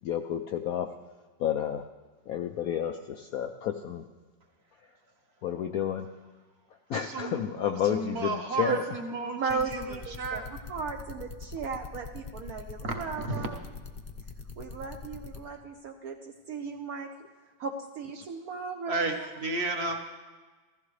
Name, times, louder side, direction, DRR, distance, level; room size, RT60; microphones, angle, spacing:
voice 1, 0.0-1.0 1.4-1.9 2.3-4.0 4.8-4.9 5.4-6.1 6.9-8.8, left 9 dB, 85° left, 5 dB, 0.7 m, -31 dB
voice 2, 6.9-7.5 7.9-10.4 12.8-13.5 18.9-20.0, right 3 dB, 40° right, 3 dB, 1.0 m, -33 dB
voice 3, 9.2-10.4 10.7-13.6 14.6-17.1 17.6-19.3, right 5 dB, 65° right, 4 dB, 0.9 m, -36 dB
sound 1, 9.5-15.4, left 5 dB, 45° left, 0.7 m, -42 dB
15.5 x 14.5 x 3.2 m, 1.3 s
omnidirectional pair, 2.1 m